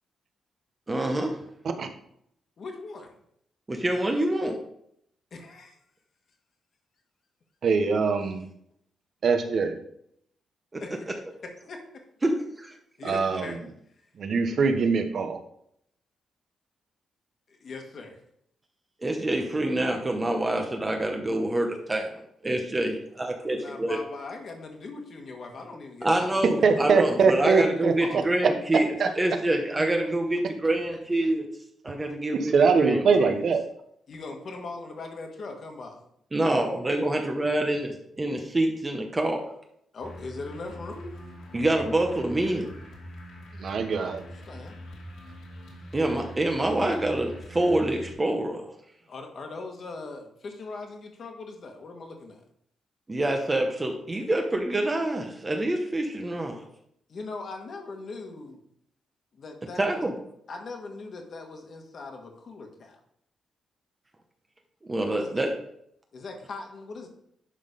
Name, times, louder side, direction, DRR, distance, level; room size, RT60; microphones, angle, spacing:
voice 1, 0.9-1.3 3.7-4.6 10.7-10.8 12.2-12.3 12.6-12.7 19.0-24.0 26.0-31.4 31.8-33.4 36.3-39.4 41.5-42.7 45.9-48.7 53.1-56.6 59.8-60.1 64.8-65.5, right 1 dB, 15° right, 3 dB, 0.8 m, -26 dB
voice 2, 2.6-3.1 5.3-5.8 10.8-11.1 11.7-11.8 13.0-13.6 17.5-18.2 23.5-28.2 34.1-36.0 39.9-41.1 43.9-44.8 49.1-52.4 57.1-58.6 59.4-60.0 60.5-63.0 65.1-65.5 66.1-67.1, left 3 dB, 45° left, 3 dB, 1.5 m, -40 dB
voice 3, 7.6-8.4 9.2-9.7 13.0-13.5 14.2-15.4 26.6-27.9 29.0-29.1 32.3-33.6 43.5-44.2, right 5 dB, 50° right, 7 dB, 1.0 m, -22 dB
sound 1, 40.0-48.1, equal, 90° left, 2.5 m, -43 dB
11.0 x 3.9 x 5.1 m, 0.72 s
wide cardioid pair, 160°, 0 cm